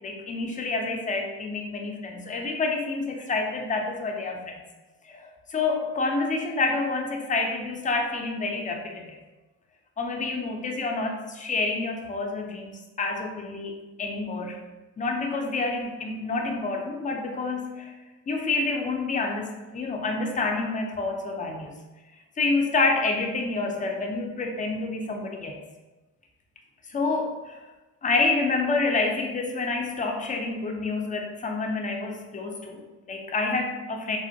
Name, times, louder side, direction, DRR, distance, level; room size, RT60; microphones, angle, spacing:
voice 1, 0.0-4.6 5.1-9.2 10.0-14.6 15.0-17.9 18.3-21.7 22.4-25.6 26.9-27.6 28.0-34.2, left 3 dB, 25° left, 2 dB, 0.5 m, -28 dB
3.3 x 2.1 x 2.6 m, 1.1 s
cardioid pair, 90°, 30 cm